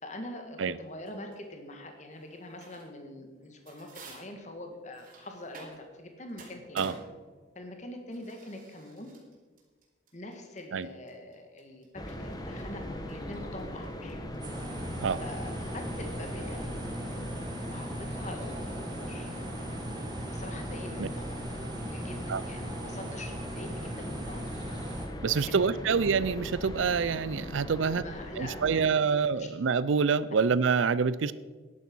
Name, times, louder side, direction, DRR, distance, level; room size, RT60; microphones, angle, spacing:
voice 1, 0.0-6.8 7.6-9.1 10.1-14.2 15.2-16.6 17.7-19.3 20.2-21.4 21.9-24.5 25.3-26.0 27.8-29.1 29.4-29.5, left 1 dB, 40° left, 4 dB, 1.8 m, -44 dB
sound 1, 1.1-1.4 2.1-3.0 3.4-6.0 6.3-18.7, right 3 dB, 45° right, 3.4 m, -51 dB
sound 2, 12.0-28.9, left 1 dB, 20° left, 1.2 m, -40 dB
sound 3, 14.4-25.1, right 1 dB, 20° right, 1.9 m, -38 dB
voice 2, 25.2-28.0 28.4-31.3, right 5 dB, 85° right, 17 dB, 0.5 m, -26 dB
12.5 x 11.0 x 6.2 m, 1.4 s
head